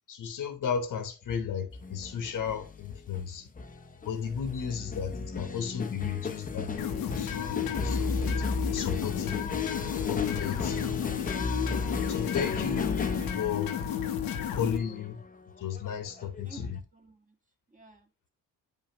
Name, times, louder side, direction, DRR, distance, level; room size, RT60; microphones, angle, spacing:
voice 1, 0.1-3.5 4.0-6.8 7.1-8.4 8.7-9.8 10.1-10.8 12.1-13.0 13.3-13.7 14.5-15.2 15.6-16.8, left 7 dB, 65° left, 1.3 m, -34 dB
sound 1, 1.7-16.8, left 3 dB, 25° left, 0.8 m, -35 dB
sound 2, 6.8-14.8, left 9 dB, 90° left, 1.2 m, -32 dB
voice 2, 16.1-17.3 17.7-18.3, right 3 dB, 25° right, 1.7 m, -53 dB
8.5 x 5.5 x 3.0 m
cardioid pair, 100°, 34 cm